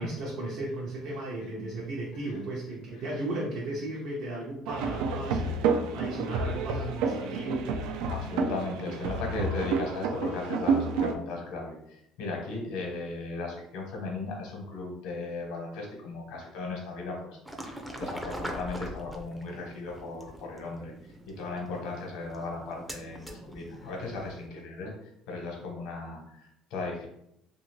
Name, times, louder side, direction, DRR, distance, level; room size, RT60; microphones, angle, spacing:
voice 1, 0.0-5.6 5.9-7.7, right 2 dB, 65° right, -4 dB, 0.7 m, -35 dB
sound 1, 4.7-11.1, right 4 dB, 85° right, 0.3 m, -29 dB
voice 2, 8.1-17.4 17.6-20.9 21.3-27.1, left 3 dB, 80° left, 0 dB, 1.0 m, -37 dB
sound 2, 17.5-24.5, equal, 5° right, 0.4 m, -42 dB
2.6 x 2.4 x 3.0 m, 0.76 s
cardioid pair, 125°, 0 cm